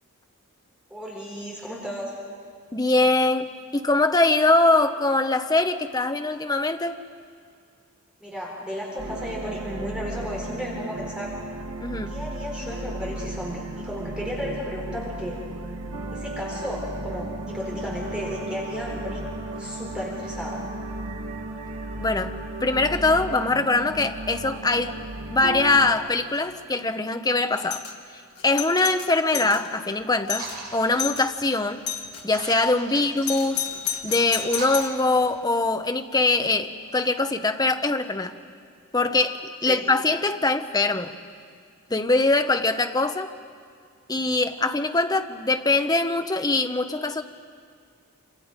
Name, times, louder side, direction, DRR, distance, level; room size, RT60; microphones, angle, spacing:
voice 1, 0.9-2.1 8.2-11.3 12.1-15.4 16.1-19.2 19.5-20.6 29.3-29.4 32.9-33.0 39.7-39.8, equal, 5° right, -4 dB, 4.0 m, -34 dB
voice 2, 2.7-7.0 11.8-12.2 22.0-25.0 25.3-27.8 28.4-31.8 32.2-33.7 34.0-38.3 38.9-41.2 41.9-43.3 44.1-47.2, left 2 dB, 15° left, 7 dB, 0.8 m, -23 dB
sound 1, 9.0-25.9, right 2 dB, 85° right, 1.6 m, -35 dB
Doorbell, 27.6-27.9 28.4-29.6 30.0-30.1 30.3-30.6 31.0-31.3 31.9-32.2 33.2-35.0, left 9 dB, 80° left, 1.6 m, -31 dB
sound 2, 30.3-35.7, right 3 dB, 40° right, 7.5 m, -42 dB
27.0 x 26.5 x 5.2 m, 2.1 s
head